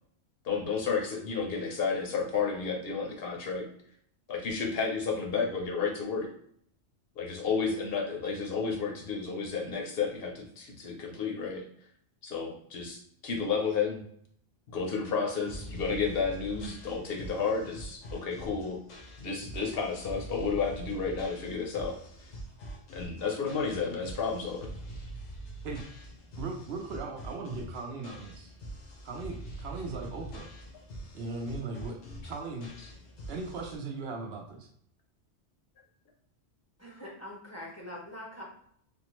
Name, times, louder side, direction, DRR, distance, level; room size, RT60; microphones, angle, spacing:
voice 1, 0.4-3.7 4.3-6.3 7.2-11.6 12.2-14.0 14.7-18.8 19.2-22.0 22.9-24.7, left 5 dB, 60° left, 1 dB, 0.8 m, -32 dB
sound 1, 15.5-33.8, right 1 dB, 90° left, 1.1 m, -44 dB
voice 2, 26.4-28.5 29.0-30.5 31.1-32.7 33.3-34.7, right 3 dB, 70° right, 2 dB, 0.8 m, -38 dB
voice 3, 36.8-38.4, left 1 dB, 20° left, -3 dB, 0.5 m, -43 dB
3.5 x 2.0 x 3.0 m, 0.66 s
omnidirectional pair, 1.2 m